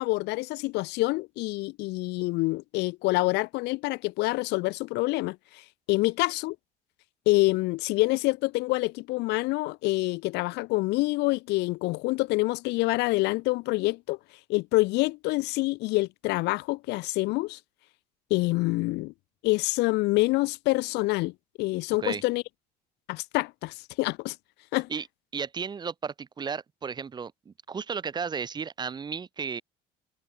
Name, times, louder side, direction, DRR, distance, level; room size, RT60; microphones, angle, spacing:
voice 1, 0.0-5.4 5.9-6.6 7.3-14.2 14.5-17.6 18.3-19.1 19.4-21.3 21.6-22.4 23.1-24.3 24.7-24.9, left 22 dB, 75° left, 0.9 m, -26 dB
voice 2, 25.3-29.6, right 6 dB, 25° right, 2.4 m, -34 dB
cardioid pair, 145°, 18 cm